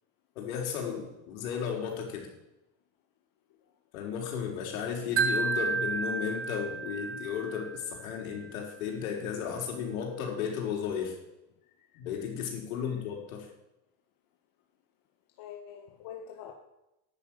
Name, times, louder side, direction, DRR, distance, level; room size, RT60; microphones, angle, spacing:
voice 1, 0.3-2.3 3.9-11.2 11.9-13.5, left 7 dB, 85° left, 1 dB, 4.8 m, -34 dB
Wind chime, 5.2-8.3, right 4 dB, 30° right, 2.0 m, -32 dB
voice 2, 12.7-13.1 15.4-16.5, left 9 dB, 55° left, 2 dB, 1.9 m, -45 dB
11.0 x 11.0 x 9.2 m, 0.92 s
supercardioid pair, 120°, 41 cm